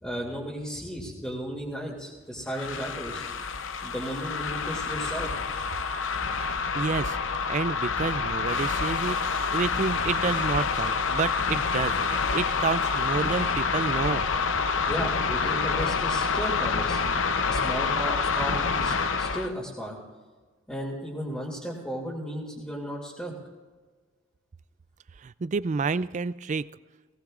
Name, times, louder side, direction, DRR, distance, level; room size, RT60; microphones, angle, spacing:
voice 1, 0.0-3.2 3.8-5.3 14.9-17.0 17.5-20.0 20.7-23.4, equal, 5° left, -6 dB, 2.4 m, -34 dB
sound 1, 2.5-19.5, left 5 dB, 75° left, 0.7 m, -27 dB
voice 2, 6.7-7.2 7.5-14.3 25.2-26.7, right 4 dB, 40° right, 17 dB, 0.4 m, -29 dB
20.5 x 17.5 x 2.5 m, 1.4 s
head